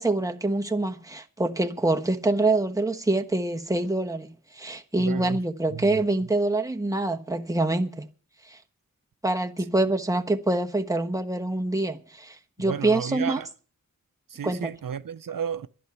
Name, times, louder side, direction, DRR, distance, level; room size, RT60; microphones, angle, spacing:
voice 1, 0.0-4.3 4.5-8.1 8.5-8.6 9.2-13.4 14.4-14.7, right 2 dB, 10° right, 1.2 m, -25 dB
voice 2, 5.0-5.4 5.7-6.0 12.6-13.5 14.3-15.7, right 8 dB, 75° right, 0.6 m, -33 dB
11.5 x 11.0 x 6.9 m
wide cardioid pair, 60°, 33 cm